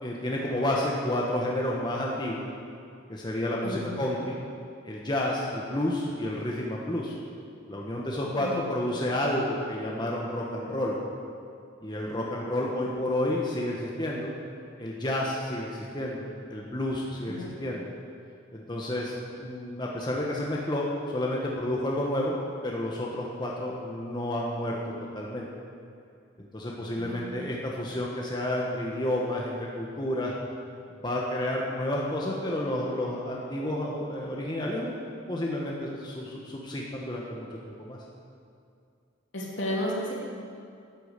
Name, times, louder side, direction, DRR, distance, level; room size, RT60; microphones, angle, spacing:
voice 1, 0.0-2.4 3.1-4.4 4.8-7.2 7.7-11.0 11.8-14.3 14.8-17.8 18.5-22.3 22.6-24.8 25.1-25.5 26.4-30.3 31.0-34.9 35.3-38.0, left 1 dB, 20° left, -3 dB, 1.3 m, -30 dB
voice 2, 3.6-4.0 8.4-8.6 17.3-17.5 27.0-27.5 39.3-40.1, left 1 dB, 70° left, -4 dB, 3.2 m, -33 dB
12.0 x 8.7 x 8.2 m, 2.4 s
head